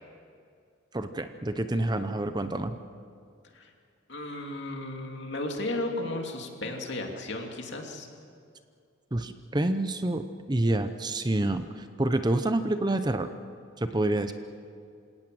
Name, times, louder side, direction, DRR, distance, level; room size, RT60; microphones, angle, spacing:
voice 1, 0.9-2.8 9.1-10.2 10.5-13.3 13.8-14.3, right 1 dB, 20° right, 9 dB, 0.7 m, -27 dB
voice 2, 4.1-8.1, left 2 dB, 55° left, 2 dB, 2.9 m, -34 dB
27.5 x 17.5 x 7.8 m, 2.4 s
head